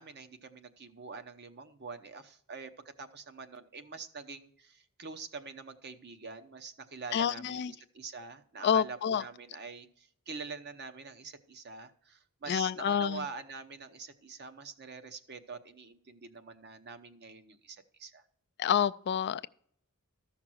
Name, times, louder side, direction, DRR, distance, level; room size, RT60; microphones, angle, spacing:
voice 1, 0.0-18.2, right 4 dB, 50° right, 0.9 m, -45 dB
voice 2, 7.1-7.7 8.6-9.2 12.5-13.2 18.6-19.5, left 8 dB, 50° left, 0.3 m, -28 dB
13.5 x 5.8 x 6.2 m
head